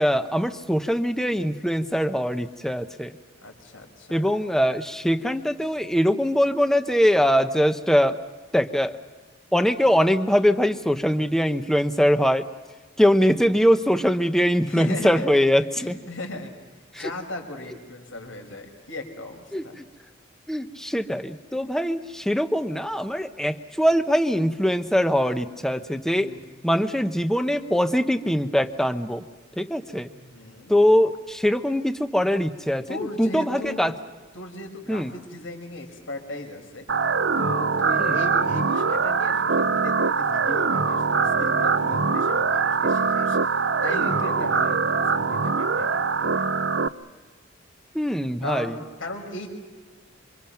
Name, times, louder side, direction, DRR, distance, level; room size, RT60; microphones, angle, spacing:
voice 1, 0.0-3.1 4.1-8.2 8.5-9.0 9.5-12.5 13.0-16.0 16.9-17.1 19.5-19.9 20.5-26.3 26.6-29.2 29.6-30.1 30.7-33.9 34.9-35.1 38.0-38.2 47.9-48.8, equal, ahead, 8 dB, 0.9 m, -22 dB
voice 2, 3.4-4.3 14.6-15.4 15.8-16.5 17.0-19.8 26.2-26.4 30.0-30.7 32.9-33.9 34.3-36.9 37.4-46.5 48.4-49.5, left 1 dB, 85° left, 3 dB, 5.7 m, -37 dB
sound 1, 36.9-46.9, right 5 dB, 60° right, 0.7 m, -23 dB
28.0 x 26.0 x 5.9 m, 1.3 s
head